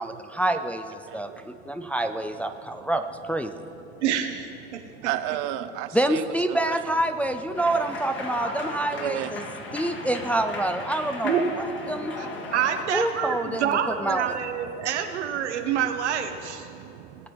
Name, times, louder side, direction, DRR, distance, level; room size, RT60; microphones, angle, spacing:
voice 1, 0.0-3.5 5.9-9.4 9.7-11.3 11.9-12.3 12.9-14.3, right 1 dB, 5° left, 0.4 m, -27 dB
voice 2, 4.0-5.1 11.2-11.5 12.2-12.3 12.5-16.7, right 8 dB, 85° right, 0.9 m, -27 dB
voice 3, 5.0-6.2 6.5-6.8 8.9-9.3 9.9-10.0 12.2-12.3 16.7-17.3, right 13 dB, 60° right, 0.7 m, -32 dB
sound 1, 7.5-12.8, left 3 dB, 35° left, 1.6 m, -36 dB
19.0 x 7.6 x 3.0 m
hypercardioid pair, 80°, 34 cm